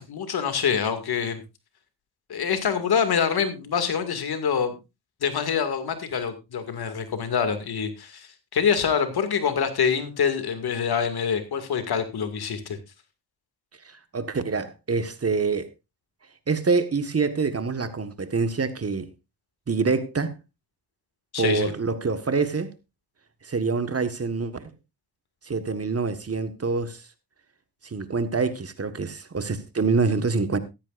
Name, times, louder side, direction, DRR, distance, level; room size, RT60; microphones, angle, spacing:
voice 1, 0.0-1.4 2.3-4.7 5.2-12.8 21.3-21.7, left 7 dB, 80° left, 2.4 m, -25 dB
voice 2, 14.1-15.7 16.5-19.1 19.7-20.3 21.4-22.7 23.4-24.7 25.5-27.0 27.8-30.6, right 4 dB, 40° right, 1.6 m, -26 dB
15.0 x 13.5 x 2.6 m
cardioid pair, 70°, 38 cm